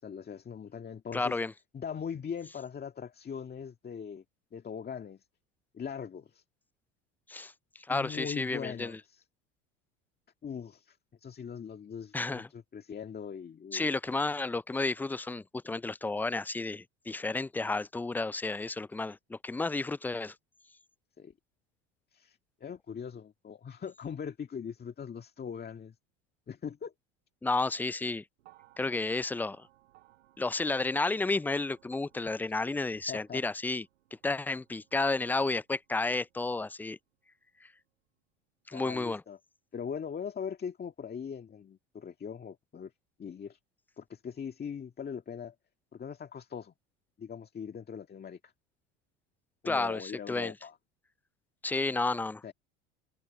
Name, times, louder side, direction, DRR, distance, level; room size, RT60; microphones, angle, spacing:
voice 1, 0.0-1.4 1.7-4.2 4.5-5.2 5.7-6.4 7.9-9.2 10.4-13.9 21.2-21.3 22.1-26.0 26.5-26.9 33.1-33.4 38.7-39.4 39.7-42.9 43.2-43.6 44.0-45.6 45.9-46.7 47.2-48.4 49.6-50.8 52.4-52.5, left 7 dB, 30° left, 2.0 m, -41 dB
voice 2, 1.1-1.5 7.3-7.5 7.9-9.0 12.1-12.5 13.7-20.3 27.4-28.2 28.8-29.7 30.4-33.8 34.2-37.0 37.6-37.7 38.7-39.2 49.6-50.5 51.6-52.4, left 3 dB, 5° left, 0.3 m, -32 dB
sound 1, 28.4-36.7 37.8-37.9, right 15 dB, 85° right, 5.5 m, -65 dB
hypercardioid pair, 85°, 34 cm